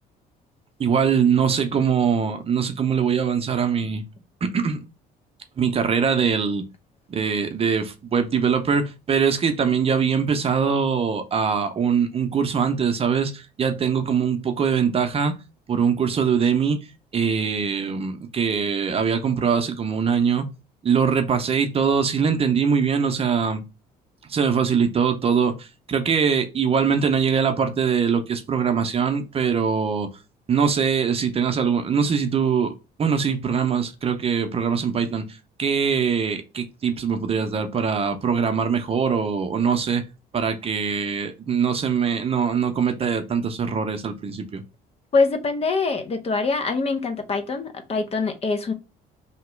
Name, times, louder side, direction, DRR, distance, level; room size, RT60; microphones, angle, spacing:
voice 1, 0.8-4.0 4.4-4.8 5.6-6.6 7.1-15.3 15.7-16.8 17.1-20.4 20.8-23.6 24.3-30.1 30.5-32.7 33.0-35.2 35.6-40.0 40.3-44.6, right 6 dB, 35° right, 0.7 m, -22 dB
voice 2, 45.1-48.7, left 4 dB, 35° left, 0.7 m, -24 dB
2.9 x 2.8 x 4.4 m
cardioid pair, 110°, 17 cm